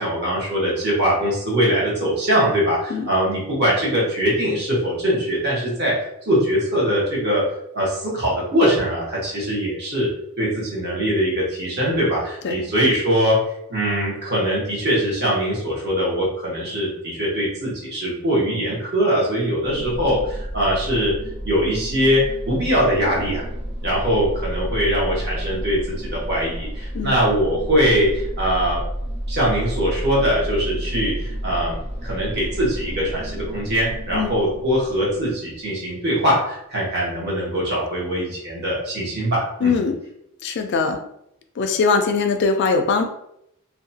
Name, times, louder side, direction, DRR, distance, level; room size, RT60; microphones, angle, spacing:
voice 1, 0.0-5.9 6.2-7.4 7.7-10.1 10.4-13.4 13.7-21.1 21.4-23.4 23.8-28.8 29.3-39.7, equal, 50° right, -5 dB, 1.0 m, -22 dB
sound 1, 19.6-35.6, equal, 75° right, 1.4 m, -31 dB
voice 2, 39.6-40.0 40.4-41.0 41.6-43.1, left 4 dB, 50° left, 6 dB, 0.3 m, -21 dB
2.7 x 2.2 x 2.7 m, 0.78 s
head